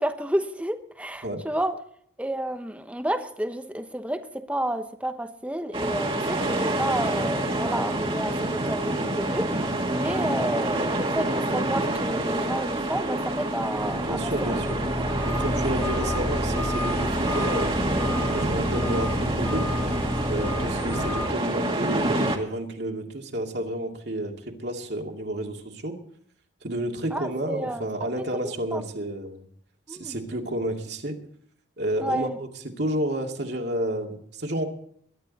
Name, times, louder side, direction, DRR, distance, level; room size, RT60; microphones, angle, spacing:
voice 1, 0.0-1.8 2.2-14.5 15.0-15.1 15.6-15.9 27.1-28.1 28.4-28.8 29.9-30.1 32.0-32.4, right 1 dB, 5° right, 8 dB, 1.0 m, -31 dB
sound 1, 5.7-22.4, right 1 dB, 30° right, 1.9 m, -27 dB
sound 2, 13.8-21.3, left 1 dB, 15° left, 2.2 m, -30 dB
voice 2, 14.0-14.8 15.3-17.8 18.3-19.7 20.2-26.0 26.6-29.5 29.9-31.2 31.8-34.6, right 1 dB, 60° right, 2 dB, 2.5 m, -31 dB
22.0 x 11.5 x 4.2 m, 0.66 s
head